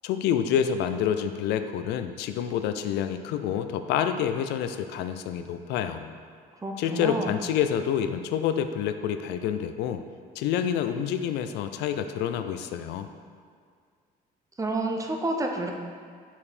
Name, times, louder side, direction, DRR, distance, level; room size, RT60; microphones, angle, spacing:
voice 1, 0.0-6.1 6.8-10.0 10.4-13.1, left 9 dB, 80° left, 8 dB, 0.4 m, -28 dB
voice 2, 6.6-7.4 14.6-15.7, right 2 dB, 20° right, 2 dB, 0.6 m, -29 dB
5.3 x 4.8 x 4.2 m, 2.1 s
cardioid pair, 110°, 17 cm